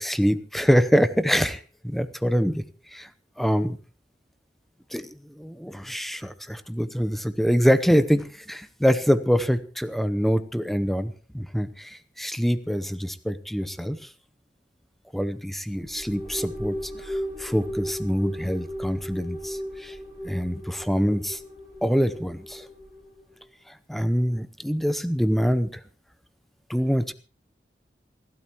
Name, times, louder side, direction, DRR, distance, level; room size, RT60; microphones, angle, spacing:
voice 1, 0.0-2.6 2.9-3.1 3.4-3.8 4.9-5.1 5.4-14.0 15.1-20.0 20.2-21.4 21.8-22.7 23.9-25.7 26.7-27.1, equal, ahead, 12 dB, 0.8 m, -25 dB
sound 1, 15.7-23.3, equal, 15° right, 6.6 m, -36 dB
28.0 x 12.5 x 3.0 m, 0.37 s
head